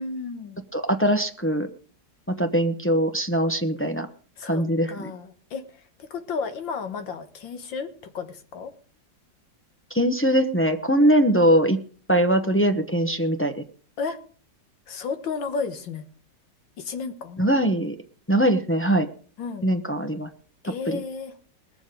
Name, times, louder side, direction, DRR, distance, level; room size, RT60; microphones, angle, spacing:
voice 1, 0.0-0.6 4.4-4.6 4.9-8.7 11.2-11.5 14.0-14.2 14.9-16.1 16.8-17.4 19.4-19.7 20.6-21.3, left 5 dB, 80° left, 9 dB, 2.1 m, -33 dB
voice 2, 0.7-1.7 2.3-4.1 4.4-5.1 9.9-11.8 12.1-13.6 17.4-18.0 18.3-19.1 19.6-20.3 20.9-21.0, right 1 dB, 15° left, 6 dB, 0.5 m, -21 dB
20.0 x 7.3 x 5.2 m, 0.43 s
omnidirectional pair, 2.0 m